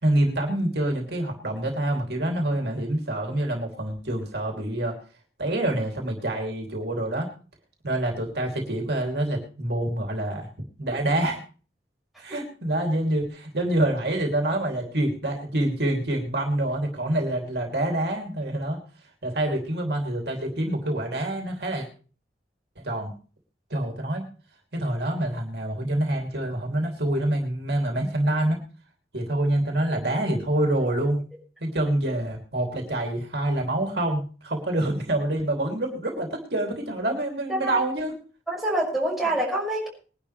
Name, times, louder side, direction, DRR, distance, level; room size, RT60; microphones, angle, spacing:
voice 1, 0.0-4.9 5.4-7.3 7.8-10.5 10.8-11.4 12.2-18.8 19.2-21.9 22.8-23.1 23.7-24.3 24.7-28.6 29.1-31.2 31.6-38.1, right 1 dB, 65° right, 1 dB, 2.9 m, -26 dB
voice 2, 37.5-37.8 38.5-39.9, right 1 dB, ahead, -5 dB, 5.8 m, -26 dB
21.0 x 11.0 x 3.3 m, 0.38 s
head